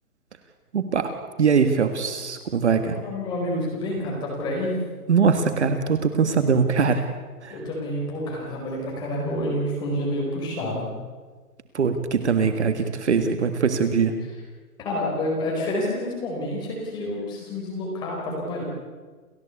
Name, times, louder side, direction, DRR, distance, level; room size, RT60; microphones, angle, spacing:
voice 1, 0.7-1.1 1.4-3.0 5.1-7.0 7.4-7.6 11.7-14.1, right 5 dB, 50° right, 8 dB, 1.9 m, -21 dB
voice 2, 2.9-4.7 7.5-10.9 14.2-14.3 14.8-18.6, left 1 dB, 10° left, -2 dB, 4.6 m, -28 dB
29.5 x 15.0 x 8.5 m, 1.4 s
hypercardioid pair, 175°, 45 cm